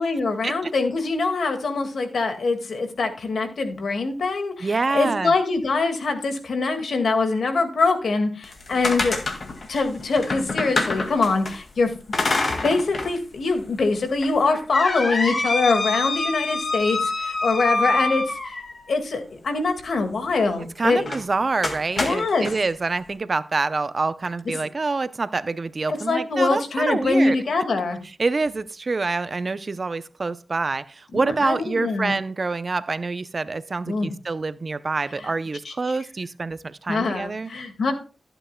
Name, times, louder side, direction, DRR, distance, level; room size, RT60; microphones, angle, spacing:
voice 1, 0.0-9.2 9.7-11.9 12.6-18.5 18.9-21.1 22.0-22.5 26.1-28.0 31.1-32.1 33.9-34.1 35.7-35.8 36.9-37.9, left 3 dB, 80° left, 1.9 m, -23 dB
voice 2, 4.6-5.3 20.6-27.4 28.2-37.5, right 3 dB, 50° right, 0.6 m, -26 dB
sound 1, 8.4-11.5 12.1-13.1 13.5-13.6 14.2-18.9 21.0-21.2 21.6-22.5, left 3 dB, 60° left, 2.0 m, -26 dB
14.5 x 8.9 x 2.2 m
cardioid pair, 55°, 0 cm